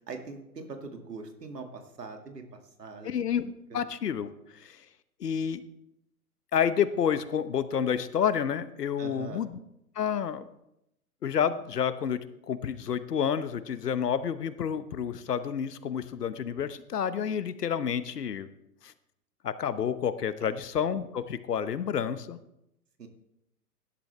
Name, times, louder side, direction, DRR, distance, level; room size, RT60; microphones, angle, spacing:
voice 1, 0.1-2.4 2.8-3.1 3.7-3.8 9.0-9.4 20.4-20.5 23.0-23.1, right 4 dB, 80° right, 5 dB, 2.2 m, -42 dB
voice 2, 3.0-4.8 5.2-5.6 6.5-9.6 9.9-10.5 11.2-18.5 18.8-18.9 19.4-22.4, left 8 dB, 75° left, 13 dB, 1.1 m, -29 dB
17.0 x 11.5 x 3.3 m, 0.83 s
figure-of-eight pair, 120°, 48 cm